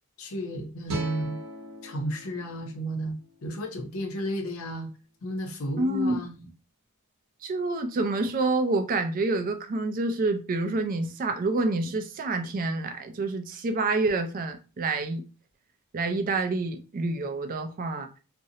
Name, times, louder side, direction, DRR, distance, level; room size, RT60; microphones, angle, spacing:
voice 1, 0.2-1.4 1.8-4.9 5.2-6.5, equal, 65° left, 0.6 m, -33 dB
sound 1, 0.9-4.1, equal, 60° right, 0.7 m, -40 dB
voice 2, 5.8-6.2 7.4-15.2 15.9-18.1, right 2 dB, 40° right, 0.3 m, -27 dB
2.5 x 2.0 x 2.7 m
head